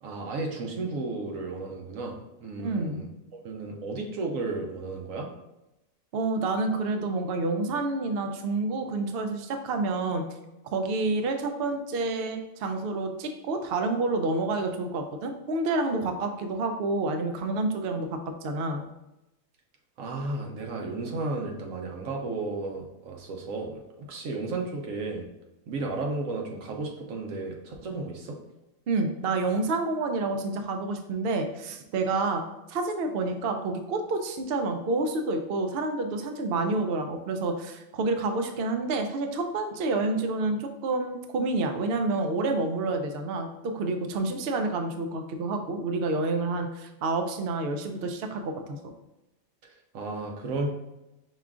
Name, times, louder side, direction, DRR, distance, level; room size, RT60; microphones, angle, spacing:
voice 1, 0.0-3.1 3.4-5.3 20.0-23.7 24.0-25.2 25.7-28.4 49.9-50.7, right 3 dB, 80° right, 1 dB, 1.1 m, -33 dB
voice 2, 2.6-3.0 6.1-10.3 10.7-18.8 28.9-32.4 32.7-48.8, right 3 dB, 65° right, 5 dB, 0.6 m, -28 dB
5.6 x 2.4 x 3.6 m, 0.93 s
omnidirectional pair, 1.4 m